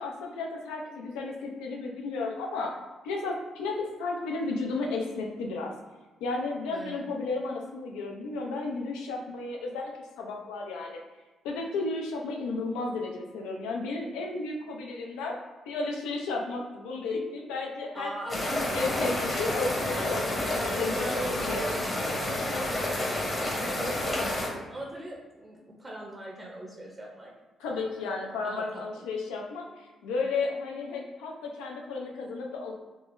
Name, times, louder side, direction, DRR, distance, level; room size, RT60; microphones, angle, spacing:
voice 1, 0.0-2.8 3.0-5.7 6.2-11.0 11.4-15.4 15.7-18.4 18.7-21.7 27.6-32.7, left 3 dB, 90° left, 0 dB, 0.4 m, -33 dB
voice 2, 6.7-7.0 17.9-18.8 19.3-19.4 19.7-20.1 20.4-21.9 22.4-27.3 28.4-29.1, right 1 dB, 25° right, -2 dB, 0.6 m, -40 dB
sound 1, 18.3-24.5, left 1 dB, 40° left, 0.9 m, -30 dB
3.7 x 2.0 x 2.5 m, 1.2 s
supercardioid pair, 55°, 0 cm